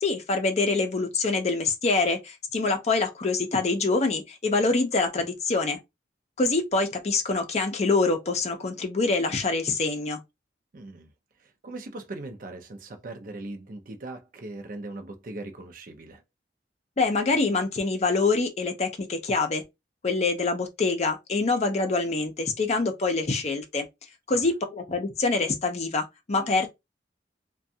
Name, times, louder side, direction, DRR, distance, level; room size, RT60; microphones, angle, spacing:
voice 1, 0.0-5.8 6.4-10.2 17.0-19.6 20.0-23.9 24.3-26.7, left 3 dB, 40° left, 0.5 m, -25 dB
voice 2, 10.7-11.1 11.4-16.2 24.3-24.4, right 2 dB, 50° right, 0.5 m, -40 dB
2.5 x 2.2 x 2.7 m
head